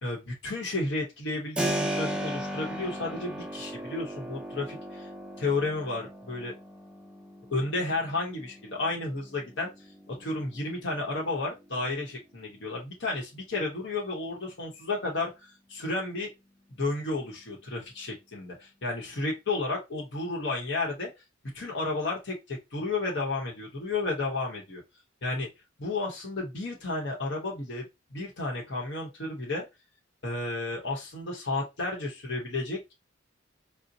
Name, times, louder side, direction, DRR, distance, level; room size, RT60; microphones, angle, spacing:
voice 1, 0.0-5.1 5.4-6.5 7.5-9.7 10.1-16.3 16.8-21.1 21.5-24.8 25.2-25.5 25.8-29.7 30.2-32.9, left 2 dB, 60° left, -1 dB, 0.9 m, -32 dB
Keyboard (musical), 1.6-12.2, equal, 5° right, 0.4 m, -37 dB
3.9 x 2.0 x 2.6 m, 0.22 s
head